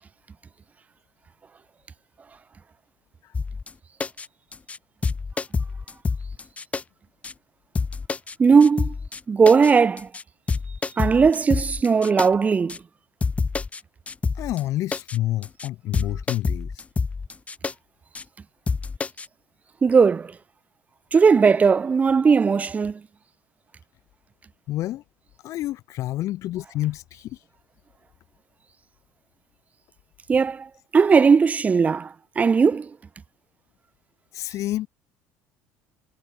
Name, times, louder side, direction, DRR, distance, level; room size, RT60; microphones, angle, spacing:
sound 1, 3.3-3.7 4.0-4.3 4.5-4.8 5.0-6.8 7.2-7.3 7.7-8.3 8.6-9.2 9.5-9.7 10.0-10.2 10.5-12.3 12.7-12.8 13.2-13.8 14.1-14.6 14.9-15.2 15.4-15.7 15.9-17.7 18.1-18.2 18.7-19.3, left 4 dB, 20° left, 1.1 m, -27 dB
voice 1, 8.4-8.9 9.3-10.1 11.0-12.8 19.8-20.3 21.1-23.0 30.3-32.9, right 5 dB, 25° right, 0.4 m, -18 dB
voice 2, 14.3-16.8 24.7-25.0 25.4-27.4 34.3-34.9, left 15 dB, 60° left, 1.1 m, -28 dB
supercardioid pair, 95°, 6 cm